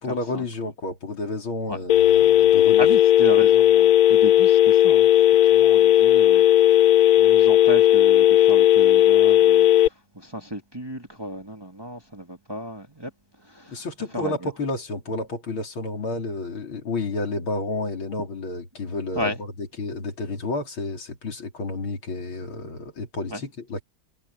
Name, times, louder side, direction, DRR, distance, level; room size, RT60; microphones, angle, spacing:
voice 1, 0.0-2.9 13.7-23.8, left 2 dB, 80° left, 4.5 m, -31 dB
Telephone, 1.9-9.9, left 12 dB, 65° left, 0.9 m, -16 dB
voice 2, 2.8-5.1 5.4-6.4 6.7-6.8 7.2-13.1 13.5-13.8 14.1-14.3 19.2-19.4 23.3-23.4, equal, 10° right, 2.1 m, -33 dB
omnidirectional pair, 2.2 m